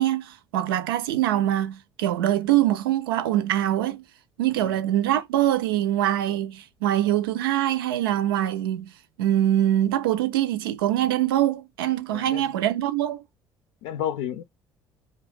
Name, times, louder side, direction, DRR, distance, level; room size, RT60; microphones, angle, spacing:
voice 1, 0.0-4.0 4.4-8.9 9.2-13.2, right 12 dB, 90° right, 0.5 m, -23 dB
voice 2, 12.1-12.5 13.8-14.4, left 10 dB, 80° left, 0.5 m, -31 dB
2.8 x 2.6 x 3.4 m
hypercardioid pair, 60°, 12 cm